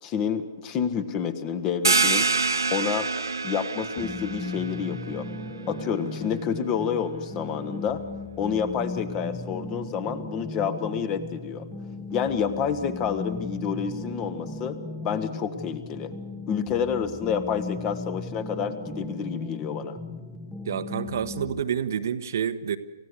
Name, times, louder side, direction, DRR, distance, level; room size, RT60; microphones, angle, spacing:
voice 1, 0.0-2.3 2.7-3.1 3.4-5.3 5.7-8.0 8.4-11.6 12.1-14.8 15.0-16.1 16.5-20.0, left 7 dB, 25° left, 13 dB, 1.3 m, -29 dB
sound 1, 1.8-7.2, right 4 dB, 75° right, 0.8 m, -27 dB
sound 2, 4.0-21.6, left 3 dB, 5° left, 1.0 m, -37 dB
voice 2, 20.7-22.8, right 8 dB, 50° right, 10 dB, 1.1 m, -28 dB
28.5 x 15.0 x 8.2 m, 1.3 s
figure-of-eight pair, 125°, 2 cm